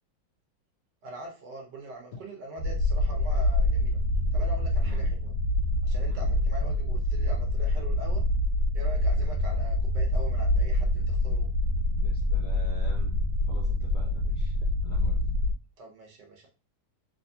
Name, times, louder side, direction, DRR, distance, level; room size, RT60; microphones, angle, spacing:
voice 1, 1.0-4.0 4.3-5.3 5.8-8.2 8.7-11.5 15.8-16.5, right 1 dB, 65° right, 1.2 m, -43 dB
sound 1, 2.6-15.5, left 1 dB, 80° right, 1.6 m, -26 dB
voice 2, 4.8-5.2 6.1-6.3 12.0-13.2 13.5-14.5 14.8-15.3, left 3 dB, 65° left, 0.9 m, -47 dB
3.3 x 2.8 x 2.7 m
omnidirectional pair, 2.2 m